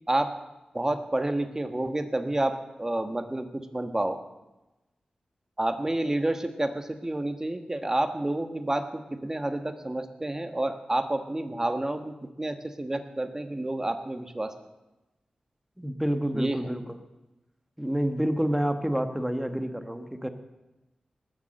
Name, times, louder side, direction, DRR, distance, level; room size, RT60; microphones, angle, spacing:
voice 1, 0.7-4.2 5.6-14.5 16.3-16.6, right 1 dB, 20° right, 7 dB, 1.4 m, -29 dB
voice 2, 15.8-17.0 17.8-20.3, equal, 5° right, 7 dB, 1.6 m, -28 dB
19.0 x 7.3 x 7.8 m, 1.0 s
wide cardioid pair, 70°, 2 cm